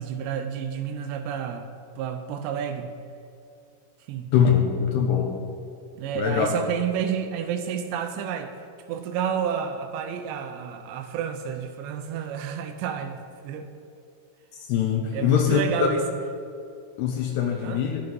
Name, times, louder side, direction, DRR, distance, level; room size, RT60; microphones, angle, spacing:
voice 1, 0.0-1.7 2.0-2.9 4.1-4.3 6.0-8.5 8.9-13.7 15.1-16.0 17.6-17.8, right 8 dB, 90° right, 6 dB, 3.0 m, -30 dB
voice 2, 4.3-5.3 6.2-6.5 14.7-15.9 17.0-18.0, left 8 dB, 80° left, 2 dB, 2.9 m, -22 dB
12.0 x 10.5 x 5.4 m, 2.5 s
omnidirectional pair, 4.9 m